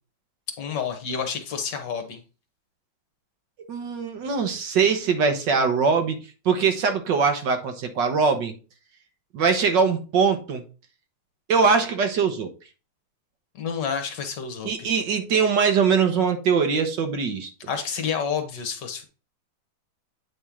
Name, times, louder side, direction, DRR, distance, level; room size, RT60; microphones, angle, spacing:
voice 1, 0.6-2.2 13.6-14.9 17.7-19.0, left 6 dB, 60° left, 6 dB, 1.7 m, -29 dB
voice 2, 3.6-6.2 6.4-8.5 9.3-10.6 11.5-12.5 14.6-17.5, right 5 dB, 65° right, 6 dB, 1.6 m, -22 dB
8.5 x 4.3 x 3.6 m, 0.32 s
omnidirectional pair, 2.2 m